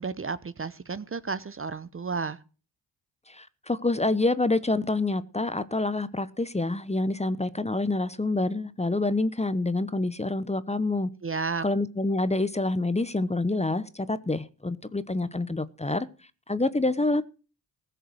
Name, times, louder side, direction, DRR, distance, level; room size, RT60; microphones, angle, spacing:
voice 1, 0.0-2.4 11.2-11.6, right 4 dB, 30° right, 0.9 m, -32 dB
voice 2, 3.3-11.1 11.6-16.1 16.5-17.2, left 2 dB, 15° left, 1.0 m, -27 dB
15.5 x 6.8 x 7.9 m
supercardioid pair, 45°, 43 cm